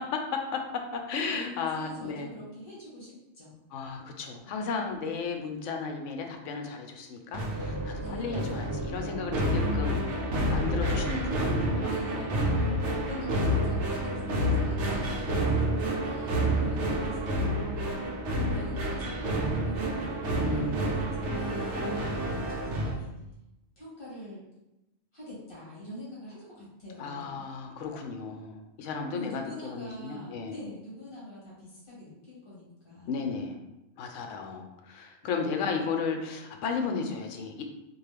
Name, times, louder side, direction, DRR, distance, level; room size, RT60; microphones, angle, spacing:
voice 1, 0.0-2.3 3.7-10.0 10.5-12.4 13.3-13.5 20.4-20.8 27.0-30.5 33.1-33.6 34.0-37.6, left 5 dB, 75° left, 4 dB, 0.9 m, -34 dB
voice 2, 1.3-3.6 4.5-4.6 8.0-8.6 11.9-12.3 13.1-17.7 18.3-23.2 23.8-24.4 25.1-27.5 29.1-33.2, left 1 dB, 45° left, -8 dB, 1.9 m, -44 dB
sound 1, 7.3-23.0, right 1 dB, 65° right, 0.9 m, -29 dB
3.8 x 2.5 x 3.3 m, 0.94 s
omnidirectional pair, 1.3 m